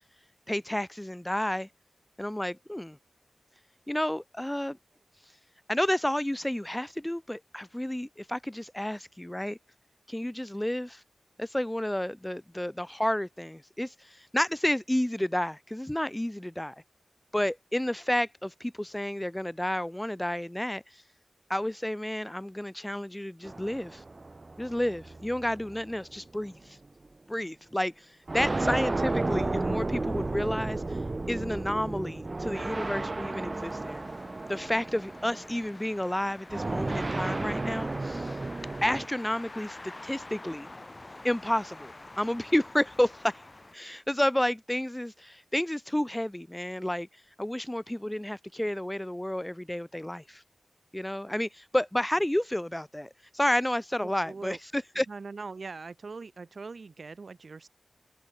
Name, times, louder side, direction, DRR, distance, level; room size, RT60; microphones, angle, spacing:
voice 1, 0.5-1.7 2.2-3.0 3.9-4.8 5.7-9.6 10.1-11.0 11.4-16.8 17.3-21.0 21.5-24.0 24.6-26.8 27.3-31.0 31.3-34.0 34.5-38.3 38.8-40.7 41.2-43.4 43.7-47.1 47.4-50.4 50.9-55.1, left 1 dB, 10° left, 0.6 m, -31 dB
sound 1, 23.4-26.2 27.0-27.1 28.3-35.6 36.5-39.1, right 2 dB, 35° right, 0.4 m, -33 dB
sound 2, 33.5-43.8, left 2 dB, 30° left, 5.9 m, -47 dB
voice 2, 54.0-54.6 55.1-57.7, right 4 dB, 60° right, 4.2 m, -42 dB
wide cardioid pair, 85°, 0 cm